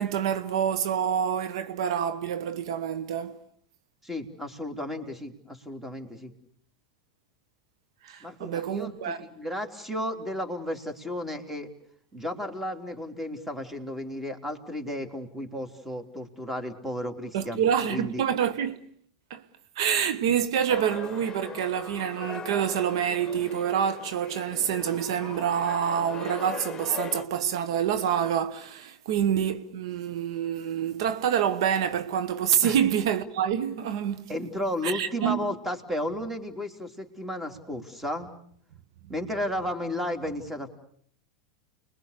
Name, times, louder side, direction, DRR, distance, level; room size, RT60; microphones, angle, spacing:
voice 1, 0.0-3.4 8.0-9.2 17.3-18.8 19.3-19.4 19.8-34.3 34.8-35.4, right 9 dB, 70° right, 1.3 m, -27 dB
voice 2, 4.0-6.3 8.2-11.7 12.1-18.2 32.6-32.8 34.3-38.3 39.1-40.7, left 1 dB, 10° right, 3.4 m, -33 dB
sound 1, 20.7-27.2, left 7 dB, 25° left, 1.4 m, -40 dB
29.5 x 22.0 x 6.7 m
hypercardioid pair, 105°, 3 cm